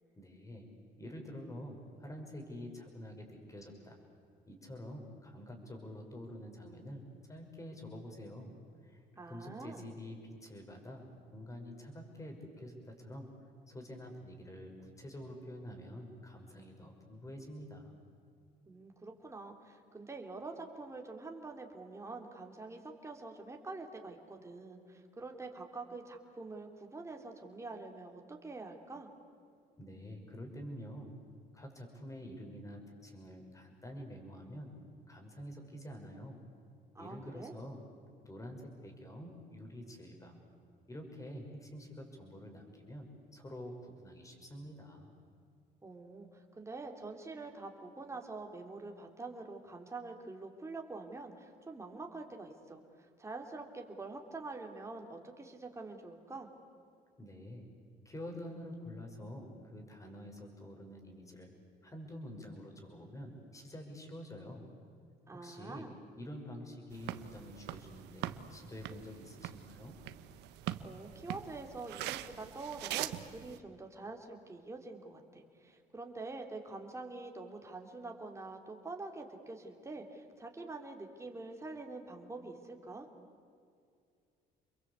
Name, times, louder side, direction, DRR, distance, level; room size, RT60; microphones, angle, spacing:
voice 1, 0.2-0.7 1.0-4.0 4.5-13.3 13.7-18.0 29.8-31.1 31.5-34.7 35.1-36.4 37.0-37.8 38.2-40.4 40.9-43.1 43.3-45.1 57.2-57.7 58.0-61.5 61.8-64.7 65.3-65.9 66.2-70.0, equal, 20° left, 3 dB, 6.1 m, -47 dB
voice 2, 9.1-9.8 18.7-29.1 36.9-37.5 45.8-56.5 65.3-65.9 70.8-83.1, right 3 dB, 15° right, 3 dB, 3.4 m, -46 dB
sound 1, 66.9-73.6, right 13 dB, 90° right, 1.1 m, -43 dB
29.5 x 22.5 x 8.4 m, 2.4 s
cardioid pair, 110°, 17 cm